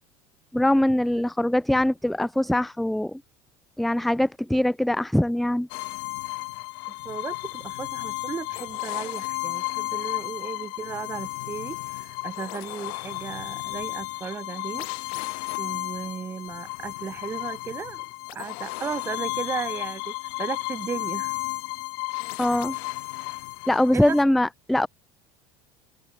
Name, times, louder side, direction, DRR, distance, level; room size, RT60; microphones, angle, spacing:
voice 1, 0.5-3.2 3.8-5.7 22.4-22.8 23.7-24.9, left 1 dB, ahead, 0.3 m, -22 dB
sound 1, 5.7-24.2, left 31 dB, 80° left, 0.5 m, -33 dB
voice 2, 6.9-14.9 15.6-21.3 22.4-22.6 23.9-24.2, right 6 dB, 20° right, 1.3 m, -35 dB
cardioid pair, 140°, 11 cm